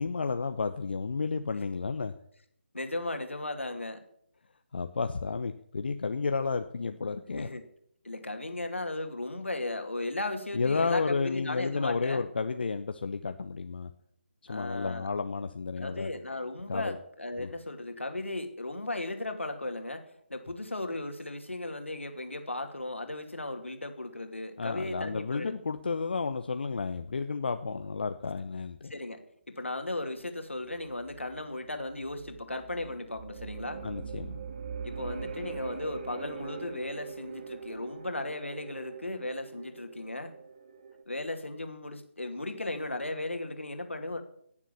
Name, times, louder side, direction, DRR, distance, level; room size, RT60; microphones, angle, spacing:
voice 1, 0.0-2.1 4.7-7.5 10.5-13.9 14.5-16.1 16.7-16.9 17.4-17.5 24.6-28.9 33.8-34.3, left 4 dB, 55° left, 8 dB, 0.9 m, -32 dB
voice 2, 2.7-4.0 7.3-7.6 8.0-12.2 14.5-15.1 15.8-25.5 28.9-29.2 29.5-33.9 34.8-40.3 41.1-44.2, left 2 dB, 80° left, 6 dB, 2.6 m, -36 dB
sound 1, 30.7-41.0, right 6 dB, 40° right, 2.3 m, -43 dB
18.5 x 7.4 x 7.0 m, 0.68 s
figure-of-eight pair, 150°, 7 cm